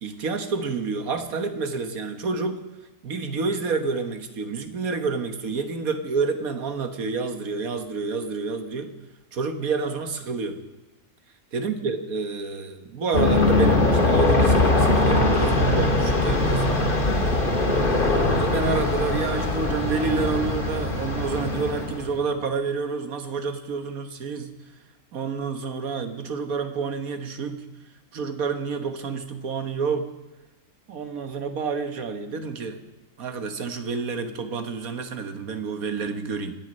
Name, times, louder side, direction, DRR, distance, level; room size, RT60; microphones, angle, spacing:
voice 1, 0.0-2.6 3.0-8.9 9.3-10.6 11.5-17.0 18.1-24.5 25.1-27.6 28.1-30.1 30.9-32.8 33.2-36.5, right 4 dB, 90° right, 8 dB, 1.8 m, -29 dB
Aircraft, 13.1-22.2, left 2 dB, 40° left, 2.2 m, -21 dB
26.0 x 9.3 x 5.4 m, 1.1 s
omnidirectional pair, 1.4 m